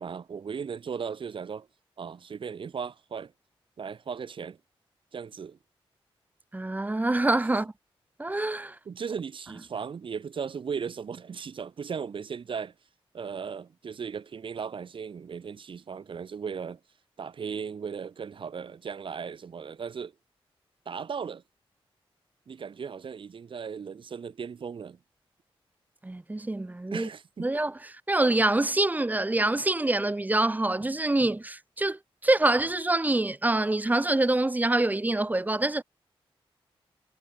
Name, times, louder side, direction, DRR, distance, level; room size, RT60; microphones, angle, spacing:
voice 1, 0.0-1.7 2.0-3.3 3.8-4.6 5.1-5.6 8.9-12.7 13.1-16.8 17.2-20.1 20.9-21.4 22.5-25.0 26.9-27.5, right 6 dB, 60° right, 2.0 m, -37 dB
voice 2, 6.5-7.7 8.2-8.8 26.0-27.1 27.4-35.8, right 2 dB, 15° right, 2.1 m, -26 dB
wide cardioid pair, 100°, 10 cm